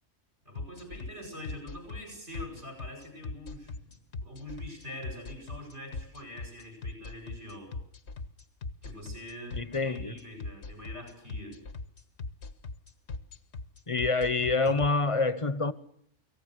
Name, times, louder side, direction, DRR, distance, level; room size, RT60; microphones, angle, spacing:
voice 1, 0.4-3.9 4.2-7.7 8.8-11.6, left 1 dB, 70° right, 8.1 m, -44 dB
sound 1, 0.6-14.9, left 3 dB, 65° left, 1.6 m, -39 dB
voice 2, 9.6-10.2 13.9-15.7, left 3 dB, 25° left, 1.2 m, -27 dB
30.0 x 18.5 x 6.7 m
omnidirectional pair, 1.2 m